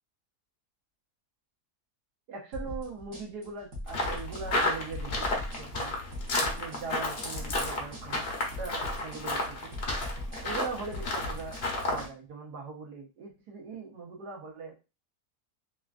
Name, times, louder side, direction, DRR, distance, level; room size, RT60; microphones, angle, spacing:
voice 1, 2.3-5.9 6.4-8.2 8.6-9.7 10.4-11.6 11.9-14.8, right 4 dB, 85° right, 1 dB, 1.4 m, -41 dB
sound 1, 2.5-12.1, left 1 dB, 55° right, 1.2 m, -40 dB
sound 2, 3.9-12.1, left 2 dB, 50° left, 0.8 m, -32 dB
3.7 x 2.3 x 2.3 m, 0.29 s
omnidirectional pair, 1.7 m